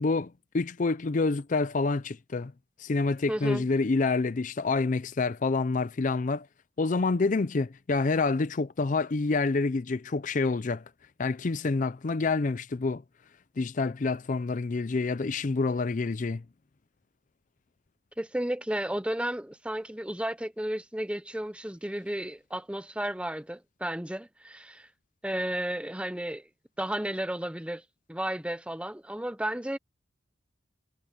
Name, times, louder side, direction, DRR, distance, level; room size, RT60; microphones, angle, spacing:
voice 1, 0.0-2.5 2.8-6.5 6.8-10.8 11.2-13.0 13.6-16.4, left 3 dB, 40° left, 0.5 m, -27 dB
voice 2, 3.3-3.7 18.2-24.9 25.2-26.4 26.8-27.8 28.1-29.8, right 1 dB, 5° right, 0.7 m, -33 dB
head